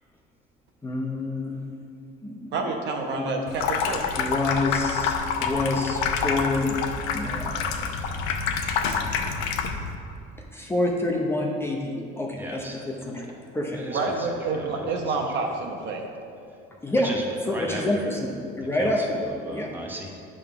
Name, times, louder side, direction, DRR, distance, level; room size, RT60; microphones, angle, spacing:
voice 1, 0.8-1.6 2.2-2.6 3.1-3.3 4.2-6.8 7.1-7.9 8.9-9.0 10.5-13.3 13.5-13.8 16.8-17.1 17.5-19.2 19.5-19.7, left 2 dB, 10° left, -1 dB, 0.7 m, -27 dB
voice 2, 2.5-4.2 13.9-16.0, right 3 dB, 55° right, 2 dB, 1.0 m, -28 dB
Water tap faucet / Sink (filling or washing), 3.5-10.0, left 5 dB, 80° left, 0.7 m, -27 dB
voice 3, 12.3-12.8 13.7-15.3 16.9-18.2 18.8-20.1, equal, 10° right, 0 dB, 1.0 m, -37 dB
8.8 x 3.7 x 5.8 m, 2.5 s
cardioid pair, 130°, 21 cm